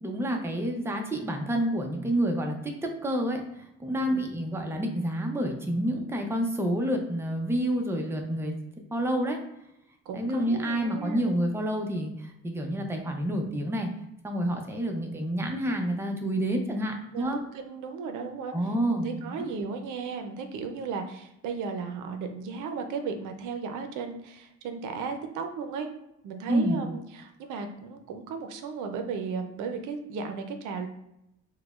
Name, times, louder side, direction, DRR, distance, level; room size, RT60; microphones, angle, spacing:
voice 1, 0.0-8.5 8.9-9.4 10.1-13.9 14.2-17.4 18.5-19.5 26.5-26.8, right 1 dB, 10° right, 2 dB, 0.5 m, -28 dB
voice 2, 10.1-11.3 17.1-18.5 18.9-25.9 26.2-30.9, right 5 dB, 90° right, 6 dB, 0.5 m, -35 dB
4.7 x 2.1 x 2.3 m, 0.84 s
cardioid pair, 90°, 30 cm